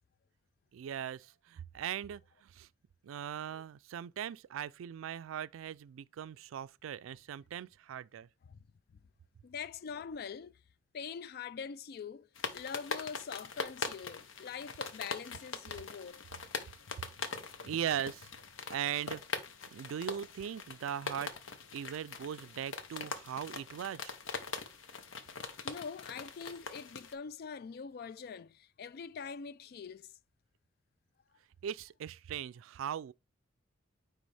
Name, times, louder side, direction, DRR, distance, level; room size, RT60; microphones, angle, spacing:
voice 1, 0.7-2.7 3.0-8.3 17.6-18.3 18.7-19.2 19.7-21.3 21.7-24.2 31.6-33.1, right 9 dB, 85° right, 0.3 m, -39 dB
voice 2, 9.4-10.6 10.9-16.2 25.6-30.2, left 6 dB, 50° left, 0.3 m, -44 dB
sound 1, 12.3-27.1, left 5 dB, 80° left, 0.8 m, -42 dB
9.3 x 3.4 x 3.3 m
head